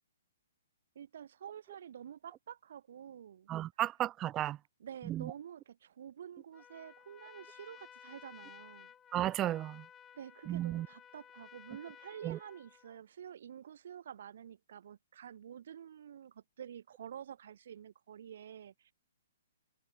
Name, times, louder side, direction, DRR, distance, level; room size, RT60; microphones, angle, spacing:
voice 1, 0.9-3.5 4.8-8.9 10.1-18.9, right 9 dB, 55° right, 1.1 m, -49 dB
voice 2, 3.5-4.6 5.1-5.2 9.1-9.8 10.5-10.9 12.2-12.4, right 13 dB, 15° right, 0.3 m, -34 dB
Trumpet, 6.5-13.0, left 9 dB, 10° left, 4.6 m, -56 dB
hypercardioid pair, 165°, 0 cm